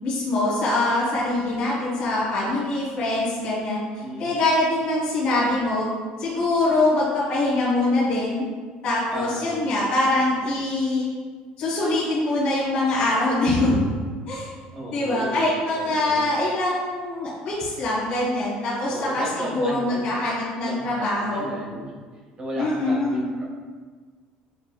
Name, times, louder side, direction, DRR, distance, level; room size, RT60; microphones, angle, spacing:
voice 1, 0.0-3.8 4.2-5.9 6.2-8.4 8.8-11.1 11.6-13.8 14.3-14.5 14.9-21.5 22.5-23.3, left 2 dB, 40° left, -9 dB, 1.3 m, -23 dB
voice 2, 4.0-4.4 9.1-9.6 14.7-16.3 18.8-20.0 20.6-22.0 22.4-23.5, right 1 dB, 30° right, -2 dB, 0.8 m, -34 dB
6.4 x 2.6 x 2.3 m, 1.5 s
cardioid pair, 170°, 3 cm